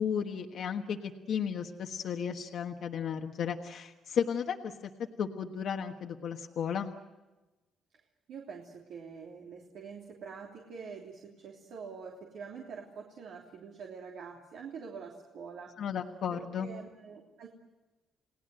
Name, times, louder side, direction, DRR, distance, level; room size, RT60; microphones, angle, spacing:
voice 1, 0.0-4.9 5.2-6.9 15.8-16.7, left 7 dB, 65° left, 3 dB, 1.3 m, -34 dB
voice 2, 8.3-15.7 16.3-17.5, right 5 dB, 75° right, -1 dB, 3.2 m, -45 dB
30.0 x 18.5 x 7.8 m, 1.1 s
cardioid pair, 90°, 0 cm